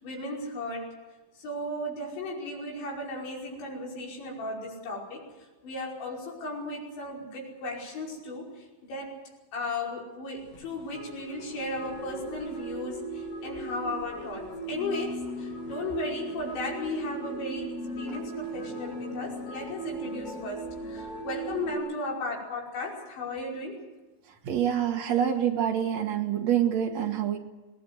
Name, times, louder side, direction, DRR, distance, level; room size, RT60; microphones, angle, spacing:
voice 1, 0.0-1.0 1.4-5.3 5.6-9.2 9.5-23.8, left 2 dB, 80° left, -2 dB, 7.6 m, -35 dB
sound 1, 10.4-21.8, right 2 dB, 50° left, 9.4 m, -38 dB
voice 2, 24.4-27.4, right 9 dB, 50° right, 3 dB, 2.4 m, -26 dB
24.0 x 19.0 x 8.0 m, 1.2 s
omnidirectional pair, 5.1 m